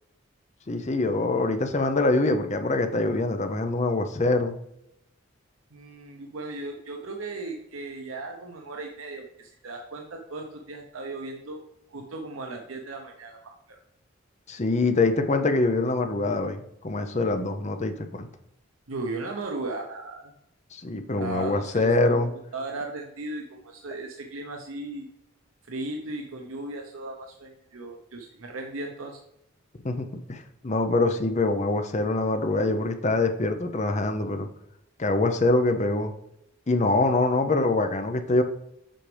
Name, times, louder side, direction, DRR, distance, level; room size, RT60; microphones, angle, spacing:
voice 1, 0.7-4.5 14.5-18.3 20.7-22.3 29.8-34.5 35.0-36.1 36.7-38.4, left 2 dB, 35° left, 7 dB, 0.6 m, -24 dB
voice 2, 5.7-11.6 11.9-13.8 18.9-20.3 21.2-22.2 22.5-25.1 25.7-29.2, right 2 dB, 85° right, 2 dB, 0.8 m, -36 dB
7.7 x 5.1 x 3.3 m, 0.80 s
head